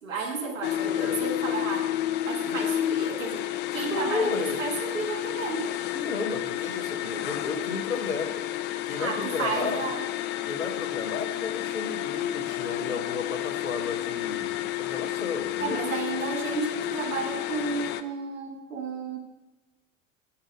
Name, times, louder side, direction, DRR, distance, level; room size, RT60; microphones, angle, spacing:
voice 1, 0.0-1.9 2.2-5.7 9.0-10.0 15.6-19.2, right 4 dB, 75° right, 2 dB, 1.5 m, -32 dB
voice 2, 0.6-1.2 2.5-2.6 3.9-4.6 5.9-8.5 8.8-9.8 10.5-15.8, left 4 dB, 85° left, 5 dB, 0.9 m, -33 dB
sound 1, 0.6-18.0, left 13 dB, 30° left, 0.4 m, -31 dB
7.1 x 6.5 x 5.1 m, 1.1 s
figure-of-eight pair, 75°, 39 cm